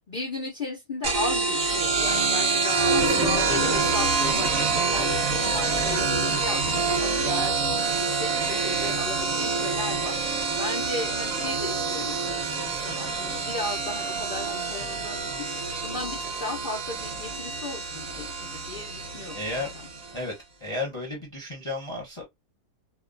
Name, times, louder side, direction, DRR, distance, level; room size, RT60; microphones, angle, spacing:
voice 1, 0.1-19.4 19.7-19.9, left 2 dB, 80° left, 0.4 m, -36 dB
sound 1, 1.0-20.2, right 4 dB, 45° right, 0.8 m, -26 dB
voice 2, 2.9-3.5 19.3-19.7 20.1-20.3 20.6-22.2, left 2 dB, 30° left, 0.6 m, -33 dB
2.9 x 2.2 x 2.5 m
omnidirectional pair, 1.9 m